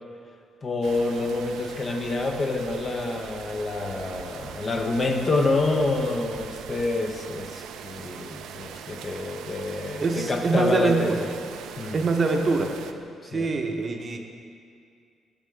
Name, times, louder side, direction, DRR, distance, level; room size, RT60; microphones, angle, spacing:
voice 1, 0.6-11.3 11.8-12.0 13.3-13.5, left 2 dB, 40° left, 3 dB, 0.7 m, -27 dB
sound 1, 0.8-12.9, right 8 dB, 85° right, 0.3 m, -41 dB
voice 2, 10.0-11.2 11.9-12.8 13.2-14.2, right 3 dB, 40° right, 4 dB, 0.7 m, -24 dB
8.7 x 6.5 x 3.3 m, 2.3 s
cardioid pair, 90°, 0 cm